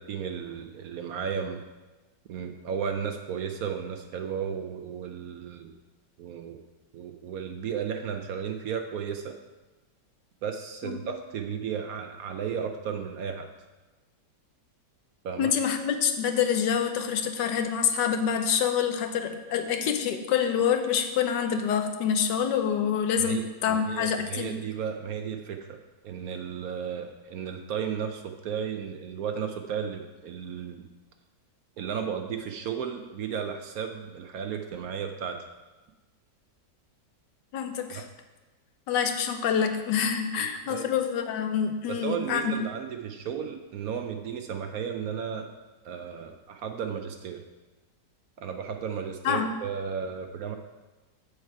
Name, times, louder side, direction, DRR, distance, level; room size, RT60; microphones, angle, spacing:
voice 1, 0.0-1.6 2.3-5.7 6.2-6.6 6.9-9.3 10.4-13.5 15.2-15.5 23.2-25.8 26.0-30.8 31.8-35.4 37.9-38.0 40.4-40.9 41.9-45.5 45.8-47.4 48.4-50.5, right 7 dB, 65° right, 5 dB, 1.0 m, -34 dB
voice 2, 15.4-24.6 37.5-38.0 38.9-42.6 49.2-49.5, left 7 dB, 80° left, 7 dB, 1.4 m, -26 dB
7.9 x 6.5 x 4.6 m, 1.2 s
omnidirectional pair, 1.9 m